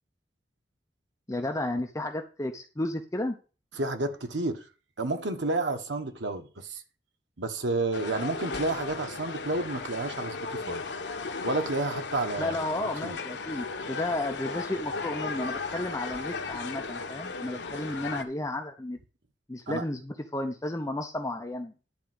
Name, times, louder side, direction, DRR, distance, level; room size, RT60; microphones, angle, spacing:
voice 1, 1.3-3.4 12.4-19.0 19.5-21.7, left 1 dB, 20° left, 0.7 m, -33 dB
voice 2, 3.7-4.7 5.0-6.8 7.4-10.8 11.4-13.2 19.7-19.8, right 2 dB, 90° right, 1.3 m, -31 dB
sound 1, 7.9-18.2, left 4 dB, 70° left, 1.2 m, -36 dB
10.5 x 4.5 x 7.9 m
head